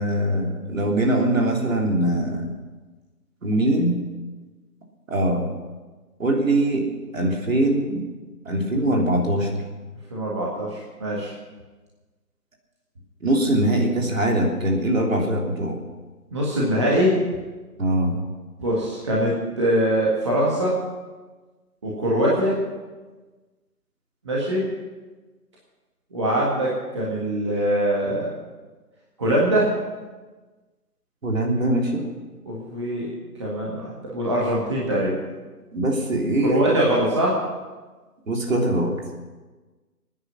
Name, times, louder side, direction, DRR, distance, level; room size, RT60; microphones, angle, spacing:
voice 1, 0.0-2.5 3.4-4.0 5.1-5.5 6.2-6.8 7.1-8.0 8.5-9.6 13.2-15.8 17.8-18.2 31.2-32.0 35.7-36.6 38.3-38.9, right 1 dB, 55° right, 0 dB, 3.5 m, -22 dB
voice 2, 10.1-11.3 16.3-17.1 18.6-20.8 21.8-22.6 24.2-24.6 26.1-28.3 29.2-29.7 31.6-31.7 32.4-33.1 33.4-35.1 36.4-37.3, right 1 dB, 20° right, -5 dB, 1.7 m, -23 dB
21.5 x 9.9 x 6.1 m, 1.3 s
figure-of-eight pair, 170°, 47 cm